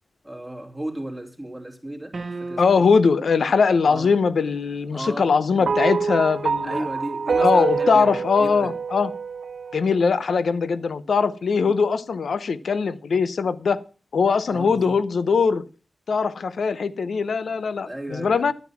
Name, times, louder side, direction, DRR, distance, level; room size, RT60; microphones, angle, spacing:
voice 1, 0.2-2.9 3.9-4.1 4.9-5.7 6.6-8.8 14.5-15.0 17.8-18.5, right 1 dB, ahead, 0 dB, 3.0 m, -35 dB
sound 1, 2.1-3.2, right 3 dB, 45° right, 1.1 m, -35 dB
voice 2, 2.6-6.9 7.4-9.1 9.7-13.8 14.1-15.6 16.1-18.5, left 5 dB, 90° left, 14 dB, 0.7 m, -21 dB
sound 2, 5.7-10.1, right 5 dB, 75° right, 0.5 m, -26 dB
11.5 x 9.4 x 5.9 m, 0.37 s
wide cardioid pair, 125°, 0 cm